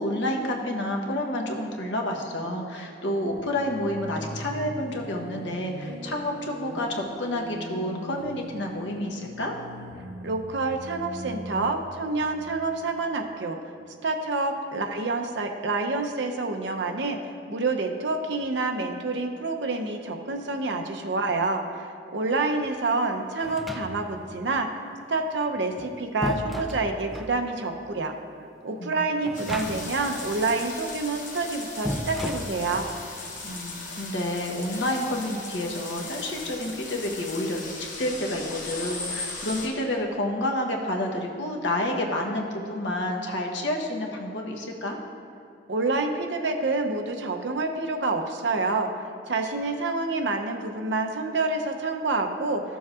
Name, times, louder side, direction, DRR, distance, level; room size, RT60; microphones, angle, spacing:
voice 1, 0.0-9.5 28.8-29.1 29.5-29.8 33.4-45.0, left 1 dB, 90° left, 1 dB, 1.0 m, -29 dB
sound 1, 3.3-13.2, right 1 dB, 50° right, 2.0 m, -41 dB
voice 2, 10.2-13.6 14.0-17.2 17.5-24.7 25.1-28.1 28.6-32.9 45.7-48.9 49.3-52.6, right 3 dB, 80° right, 4 dB, 0.7 m, -27 dB
sound 2, 23.4-24.3 25.6-27.4 29.2-30.1 30.3-30.4 31.8-33.0, equal, ahead, 0.3 m, -34 dB
sound 3, 29.3-39.7, left 3 dB, 45° left, 1.2 m, -38 dB
13.5 x 7.0 x 2.4 m, 2.4 s
head